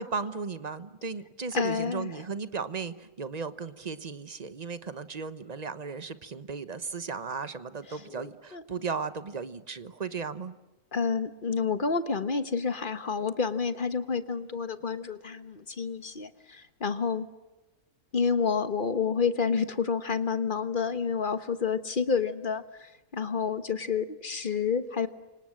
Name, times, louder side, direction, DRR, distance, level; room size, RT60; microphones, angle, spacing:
voice 1, 0.0-10.5, right 5 dB, 30° right, 12 dB, 1.0 m, -36 dB
voice 2, 1.5-2.1 8.1-8.2 8.5-8.6 10.9-17.3 18.1-25.1, left 5 dB, 35° left, 10 dB, 1.4 m, -29 dB
29.5 x 25.5 x 7.7 m, 1.1 s
omnidirectional pair, 1.6 m